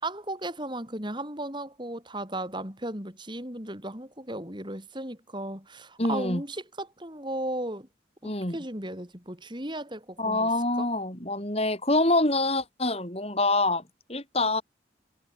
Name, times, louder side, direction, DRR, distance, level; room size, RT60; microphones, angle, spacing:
voice 1, 0.0-7.9 8.2-10.5 10.8-10.9, right 1 dB, 25° right, 6.3 m, -35 dB
voice 2, 6.0-6.4 8.2-8.6 10.2-13.8 14.1-14.6, left 2 dB, 30° left, 7.8 m, -26 dB
head